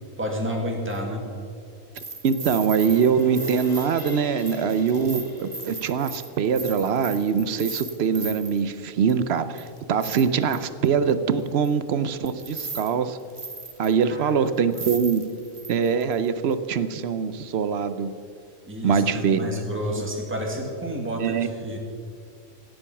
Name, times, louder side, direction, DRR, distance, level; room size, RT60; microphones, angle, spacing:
voice 1, 0.2-1.2 14.0-14.5 18.7-21.8, equal, 10° right, 0 dB, 1.8 m, -30 dB
sound 1, 0.9-1.0 1.9-8.6 9.1-9.2 9.6-10.9 11.6-11.7 12.3-12.9 13.2-14.0 14.5-14.6 14.7-16.2 16.5-16.6, right 4 dB, 25° right, 1.1 m, -37 dB
voice 2, 2.2-13.2 13.8-15.2 15.7-18.1 18.8-19.6 21.2-21.5, right 6 dB, 60° right, 12 dB, 0.8 m, -23 dB
sound 2, 2.3-8.9 9.3-9.4, left 1 dB, 15° left, 1.3 m, -43 dB
17.0 x 7.8 x 5.9 m, 2.4 s
omnidirectional pair, 1.4 m